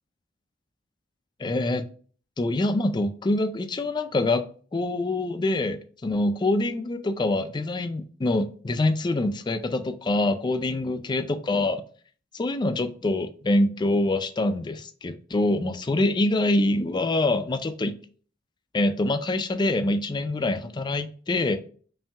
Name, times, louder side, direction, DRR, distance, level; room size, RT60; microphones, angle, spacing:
voice 1, 1.4-1.8 2.4-4.4 4.7-11.8 12.4-18.0 18.7-21.6, left 2 dB, 20° left, 0.3 m, -25 dB
5.5 x 2.7 x 2.3 m
head